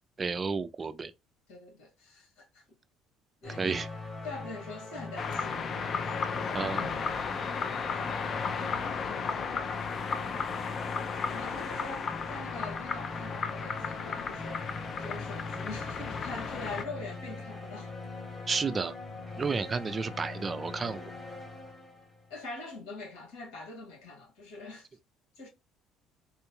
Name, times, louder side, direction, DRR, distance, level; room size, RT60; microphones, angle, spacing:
voice 1, 0.2-1.1 3.6-3.9 6.5-6.9 18.5-18.9 19.4-21.1, right 4 dB, 25° right, 0.4 m, -31 dB
voice 2, 1.5-2.6 3.4-3.8 4.2-5.9 9.0-9.7 11.3-17.9 22.3-24.9 25.4-25.5, left 3 dB, 85° left, 1.9 m, -44 dB
sound 1, 3.4-22.3, left 3 dB, 15° left, 1.2 m, -42 dB
sound 2, 5.2-16.8, left 5 dB, 40° left, 0.5 m, -34 dB
3.7 x 2.3 x 2.9 m
cardioid pair, 115°, 0 cm